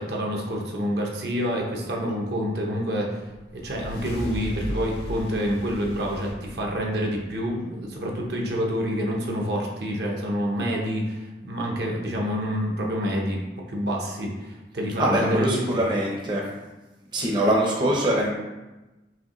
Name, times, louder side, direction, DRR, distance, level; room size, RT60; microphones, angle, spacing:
voice 1, 0.0-3.2 3.5-13.4 13.7-15.8, equal, 65° right, -1 dB, 0.7 m, -27 dB
sound 1, 3.3-7.8, equal, 65° left, 0.8 m, -36 dB
voice 2, 15.0-16.4 17.1-18.3, right 1 dB, 25° right, -2 dB, 0.6 m, -23 dB
4.9 x 2.9 x 3.0 m, 1.1 s
head